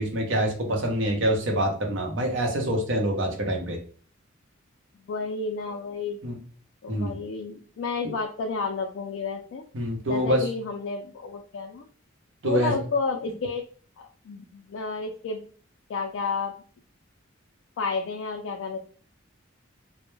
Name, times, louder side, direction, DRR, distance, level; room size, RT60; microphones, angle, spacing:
voice 1, 0.0-3.8 6.2-6.4 6.9-7.2 9.7-10.5 12.4-12.8, equal, 60° right, 2 dB, 0.7 m, -25 dB
voice 2, 5.0-6.2 6.8-9.6 10.1-11.8 12.4-13.6 14.0-15.5 15.9-16.5 17.8-18.8, left 4 dB, 70° left, 2 dB, 0.3 m, -31 dB
2.1 x 2.0 x 3.0 m, 0.43 s
head